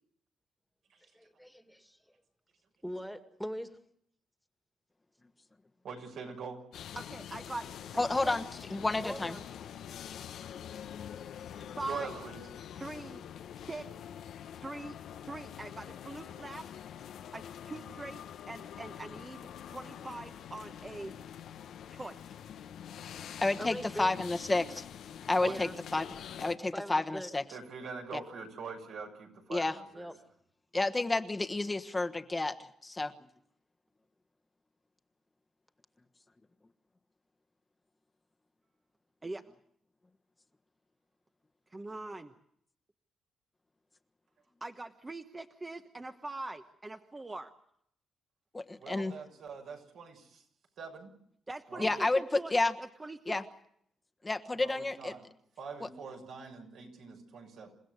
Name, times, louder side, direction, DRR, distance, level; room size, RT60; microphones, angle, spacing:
voice 1, 1.1-2.0 2.8-3.8 9.0-9.4 11.5-11.6 23.6-24.1 25.5-25.8 26.7-27.3 29.9-30.1, equal, ahead, 7 dB, 2.0 m, -42 dB
voice 2, 5.8-6.6 11.9-12.4 25.4-25.6 27.5-30.1 48.8-50.4 50.8-51.1 51.7-52.0 54.5-55.2 55.6-57.7, right 5 dB, 75° right, 2 dB, 6.8 m, -44 dB
sound 1, 6.7-26.6, left 9 dB, 80° left, 0.9 m, -45 dB
voice 3, 7.0-7.7 7.9-8.4 11.8-12.1 12.8-13.2 13.6-13.9 14.6-15.0 15.2-16.7 17.3-21.1 21.9-22.2 39.2-39.4 41.7-42.3 44.6-47.5 51.5-53.4, right 2 dB, 20° right, 6 dB, 1.2 m, -42 dB
voice 4, 8.0-8.4 8.7-9.4 23.4-24.8 25.3-26.1 26.4-27.4 28.1-28.2 29.5-29.8 30.7-33.1 48.5-49.1 51.8-52.7 53.3-53.4 54.2-55.1 55.8-55.9, left 2 dB, 20° left, 7 dB, 1.3 m, -30 dB
29.0 x 16.0 x 8.0 m, 0.71 s
cardioid pair, 90°, 0 cm